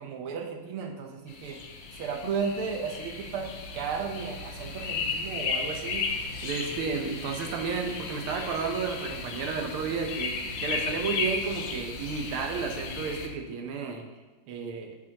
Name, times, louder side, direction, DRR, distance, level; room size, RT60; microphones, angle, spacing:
voice 1, 0.0-1.6 2.0-3.5 3.7-6.1 6.4-14.0 14.5-15.0, right 5 dB, 80° right, 3 dB, 1.7 m, -33 dB
sound 1, 1.3-13.3, left 4 dB, 70° left, 1.3 m, -35 dB
9.0 x 4.9 x 2.8 m, 1.3 s
omnidirectional pair, 2.4 m